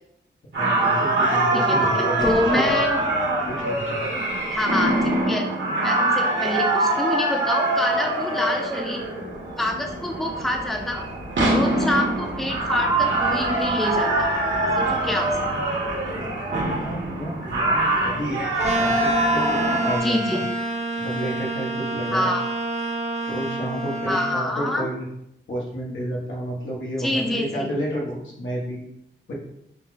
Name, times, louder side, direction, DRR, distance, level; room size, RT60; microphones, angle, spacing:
sound 1, 0.5-20.0, right 2 dB, 75° right, 1.5 m, -24 dB
voice 1, 0.6-2.7 3.5-4.1 15.2-15.8 16.1-18.4 18.7-20.4 21.0-22.3 23.2-25.1 25.5-29.0 29.3-29.4, equal, 80° left, -4 dB, 1.3 m, -31 dB
voice 2, 1.5-3.0 4.5-4.9 5.3-5.4 5.8-9.0 9.6-11.1 11.5-14.3 14.7-15.4 20.0-20.4 22.1-22.4 24.1-24.9 27.0-27.7, left 1 dB, ahead, 1 dB, 0.6 m, -26 dB
sound 2, 18.6-24.4, right 1 dB, 35° right, 0.7 m, -27 dB
5.5 x 2.3 x 3.9 m, 0.81 s
wide cardioid pair, 110°, 20 cm